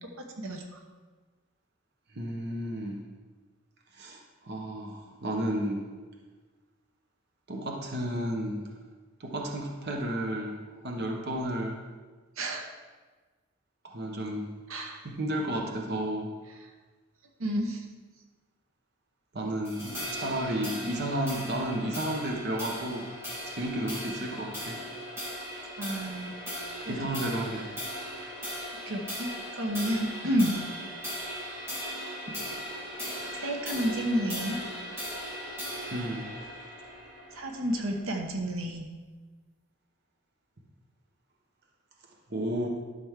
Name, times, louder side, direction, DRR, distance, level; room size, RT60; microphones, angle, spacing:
voice 1, 0.0-0.8 12.4-12.8 14.7-15.0 16.6-16.7 17.4-17.9 25.8-26.4 26.8-27.3 28.9-30.6 33.4-34.6 37.3-38.9, equal, 75° right, 3 dB, 1.0 m, -31 dB
voice 2, 2.1-3.0 3.9-5.8 7.5-8.7 9.2-10.6 10.8-11.8 13.8-14.5 15.0-16.3 19.3-23.0 23.5-24.8 26.9-27.7 32.3-32.5 35.9-36.3 42.3-42.7, right 1 dB, 50° right, 1 dB, 1.0 m, -32 dB
sound 1, 19.6-38.2, equal, 10° right, 2.4 m, -38 dB
12.0 x 6.1 x 3.6 m, 1.4 s
head